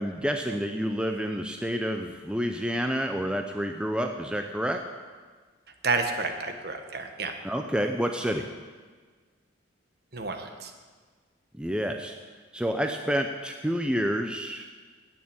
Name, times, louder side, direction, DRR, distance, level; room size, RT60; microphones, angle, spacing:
voice 1, 0.0-4.8 7.4-8.4 11.5-12.1 12.5-14.8, equal, 5° right, 4 dB, 0.6 m, -29 dB
voice 2, 5.8-7.3 10.1-10.7, right 3 dB, 50° right, 5 dB, 1.3 m, -30 dB
10.5 x 8.8 x 8.8 m, 1.5 s
head